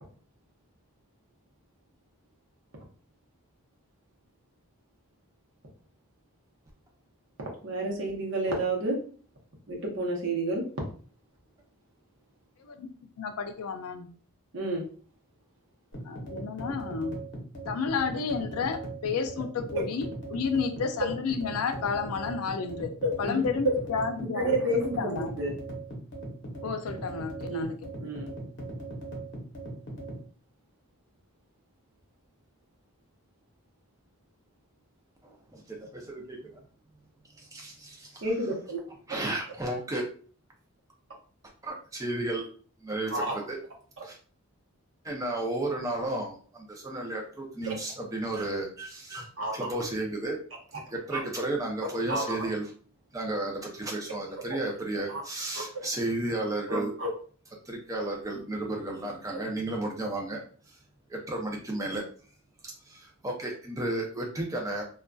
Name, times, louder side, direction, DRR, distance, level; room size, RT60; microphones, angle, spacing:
voice 1, 7.6-9.0 9.7-10.7 14.5-14.8 23.0-23.4 24.3-25.5 27.5-27.7 28.0-28.3 38.2-38.8 43.1-43.4 47.6-47.7 49.1-49.7 51.1-51.2 52.1-52.5 55.1-55.2 55.5-55.6 56.7-57.1, right 1 dB, 60° right, -1 dB, 0.8 m, -30 dB
voice 2, 13.2-14.1 16.1-17.2 17.7-22.9 23.2-24.5 24.8-25.4 26.6-28.1, left 5 dB, 85° left, 7 dB, 0.4 m, -31 dB
sound 1, 15.9-30.2, right 2 dB, 50° left, 0.7 m, -39 dB
voice 3, 35.2-36.6 37.4-37.7 39.1-40.1 41.6-42.5 42.8-43.6 44.0-44.2 45.0-49.3 49.5-50.4 50.9-52.7 53.1-56.9 57.6-60.8 61.1-62.0 62.8-64.8, right 2 dB, 15° right, 0 dB, 0.4 m, -33 dB
2.5 x 2.2 x 2.2 m, 0.42 s
head